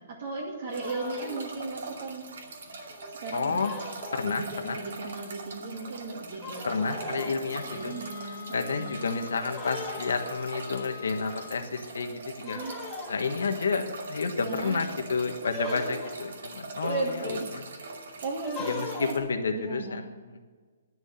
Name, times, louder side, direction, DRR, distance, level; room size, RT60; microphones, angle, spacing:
voice 1, 0.0-2.3 3.1-3.9 4.2-9.0 12.4-12.7 14.4-14.8 15.6-15.9 16.8-17.5 18.2-19.1 19.5-20.0, right 3 dB, 50° right, -3 dB, 2.2 m, -36 dB
sound 1, 0.7-1.6 2.2-2.3 2.7-4.5 5.3-5.4 5.7-6.1 6.4-7.6 8.5-8.9 9.3-10.5 11.4-11.5 12.4-13.5 15.4-16.2 18.3-19.3, left 3 dB, 10° left, 1.9 m, -40 dB
sound 2, 0.7-19.2, right 3 dB, 70° right, 2.4 m, -42 dB
voice 2, 3.3-3.7 4.1-4.8 6.6-8.0 8.5-12.6 13.1-13.8 14.1-17.6 18.6-20.4, left 4 dB, 90° left, 5 dB, 1.3 m, -30 dB
sound 3, 7.5-11.7, left 8 dB, 35° left, 1.0 m, -45 dB
11.0 x 6.2 x 8.9 m, 1.5 s
hypercardioid pair, 160°, 0 cm